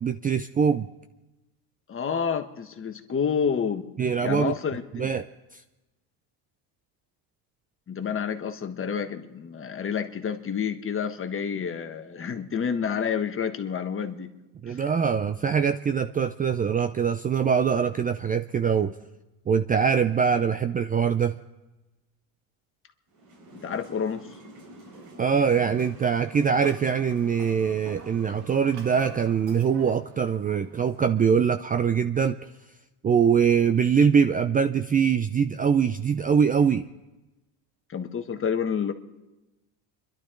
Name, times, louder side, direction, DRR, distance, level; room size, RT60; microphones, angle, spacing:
voice 1, 0.0-0.9 4.0-4.5 4.9-5.2 14.6-18.9 19.5-21.4 25.2-32.4 33.0-36.9, right 7 dB, 20° right, 10 dB, 0.4 m, -23 dB
voice 2, 1.9-3.9 4.2-5.1 7.9-14.3 14.7-14.8 23.5-24.3 37.9-38.9, left 7 dB, 30° left, 7 dB, 1.4 m, -29 dB
sound 1, 23.1-29.3, right 1 dB, 85° right, 4.7 m, -48 dB
sound 2, 24.9-31.0, right 4 dB, 60° right, 1.8 m, -49 dB
26.0 x 12.0 x 3.8 m, 1.0 s
supercardioid pair, 95°, 42 cm